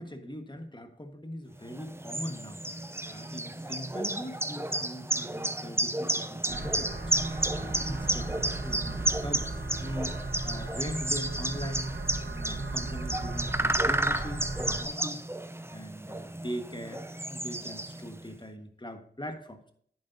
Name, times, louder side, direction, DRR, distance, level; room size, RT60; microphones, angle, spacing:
voice 1, 0.0-2.6 3.1-7.0 7.3-11.9 12.2-15.2 15.7-19.7, equal, 25° left, 6 dB, 1.5 m, -41 dB
sound 1, 1.7-18.2, right 1 dB, 15° right, 0.6 m, -32 dB
sound 2, 6.5-14.8, right 2 dB, 85° right, 1.2 m, -36 dB
10.5 x 8.7 x 2.7 m, 0.62 s
wide cardioid pair, 40°, 18 cm